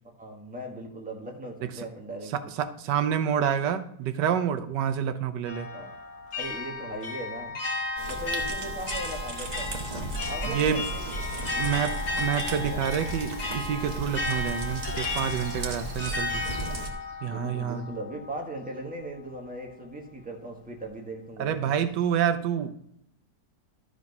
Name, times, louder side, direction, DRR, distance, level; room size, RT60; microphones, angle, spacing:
voice 1, 0.2-2.5 5.7-5.9 6.4-7.6 8.1-9.7 10.2-11.8 12.4-12.9 17.2-21.7, right 1 dB, 5° right, 0 dB, 1.4 m, -39 dB
voice 2, 2.3-5.7 10.4-10.9 11.6-16.4 17.2-17.8 21.4-22.9, right 8 dB, 85° right, 10 dB, 1.3 m, -28 dB
sound 1, 5.5-18.4, left 3 dB, 40° left, 1.7 m, -34 dB
sound 2, 8.0-16.9, right 3 dB, 30° right, 1.2 m, -37 dB
sound 3, 9.5-16.7, left 2 dB, 90° left, 4.8 m, -42 dB
12.5 x 5.1 x 5.4 m, 0.73 s
omnidirectional pair, 1.8 m